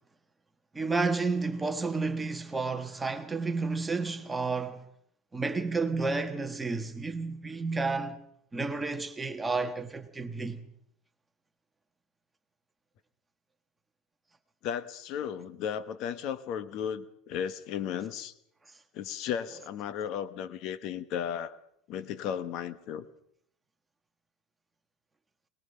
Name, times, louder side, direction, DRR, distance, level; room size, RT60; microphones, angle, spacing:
voice 1, 0.7-4.8 5.3-8.2 8.5-10.7, right 3 dB, 10° right, 1.4 m, -31 dB
voice 2, 14.6-18.3 18.9-21.6 21.9-23.1, left 8 dB, 50° left, 1.2 m, -35 dB
22.0 x 20.5 x 5.7 m
supercardioid pair, 150°, 0 cm